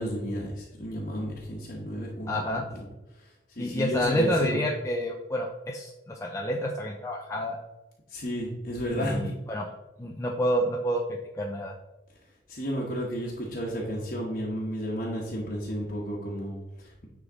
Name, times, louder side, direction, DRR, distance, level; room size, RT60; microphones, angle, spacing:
voice 1, 0.0-2.9 3.2-4.6 8.1-9.2 12.5-17.1, equal, 50° left, -3 dB, 1.2 m, -33 dB
voice 2, 2.3-2.6 3.6-7.6 9.0-9.7 10.0-11.0 11.4-11.7, equal, 15° left, -1 dB, 0.6 m, -29 dB
9.6 x 3.7 x 3.9 m, 1.0 s
head